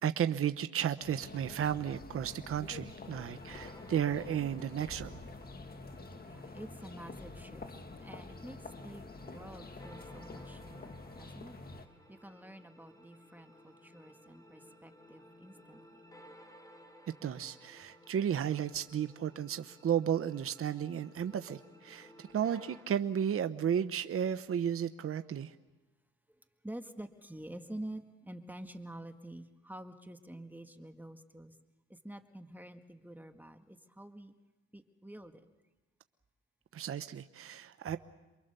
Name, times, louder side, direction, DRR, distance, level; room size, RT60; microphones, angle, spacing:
voice 1, 0.0-5.2 17.2-25.5 36.7-38.0, right 9 dB, 45° right, 10 dB, 0.9 m, -33 dB
sound 1, 1.0-11.9, left 3 dB, 30° left, 1.8 m, -47 dB
sound 2, 3.0-22.8, equal, 10° left, 4.9 m, -57 dB
voice 2, 5.4-11.6 12.1-15.8 26.6-31.6 31.9-34.3 34.7-35.5 37.9-38.0, right 1 dB, 5° right, 6 dB, 1.8 m, -48 dB
28.5 x 23.0 x 6.8 m, 1.1 s
cardioid pair, 90°, 30 cm